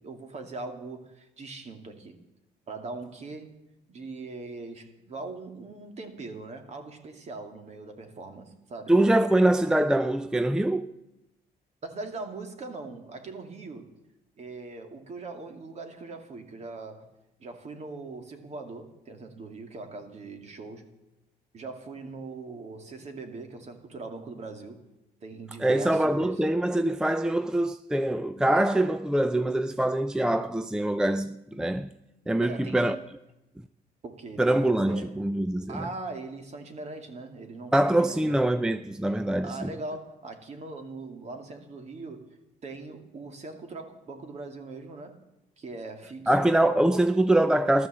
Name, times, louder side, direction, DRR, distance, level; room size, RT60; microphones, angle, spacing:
voice 1, 0.0-2.2 2.7-3.5 3.9-8.9 11.8-13.9 14.4-17.1 17.4-20.9 21.5-24.8 25.2-26.4 32.4-33.0 34.0-35.1 35.7-38.4 39.4-42.3 42.6-45.2 45.6-46.5, right 3 dB, 40° right, 2.5 m, -41 dB
voice 2, 8.9-10.9 25.6-31.9 32.3-33.0 34.4-35.8 37.7-39.7 46.3-47.9, right 1 dB, 5° right, 0.5 m, -24 dB
14.5 x 13.0 x 7.6 m
cardioid pair, 110°, 17 cm